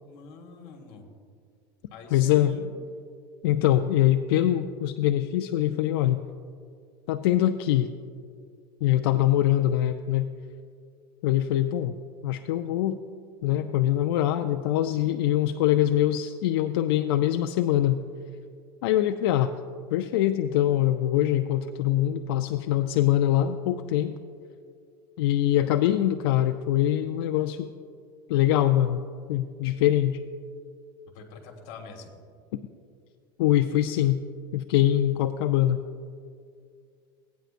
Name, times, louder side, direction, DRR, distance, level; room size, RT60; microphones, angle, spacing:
voice 1, 0.0-1.1 1.9-2.7 31.1-32.1, left 5 dB, 60° left, 2 dB, 1.7 m, -45 dB
voice 2, 2.1-2.6 3.4-6.2 7.1-7.9 8.8-10.3 11.2-12.0 12.2-13.0 13.4-18.0 18.8-19.5 19.9-24.1 25.2-27.7 28.3-29.0 29.3-30.2 32.5-32.6 33.4-34.2 34.5-35.8, left 12 dB, 90° left, 7 dB, 0.4 m, -23 dB
16.5 x 9.2 x 2.5 m, 2.2 s
supercardioid pair, 155°, 12 cm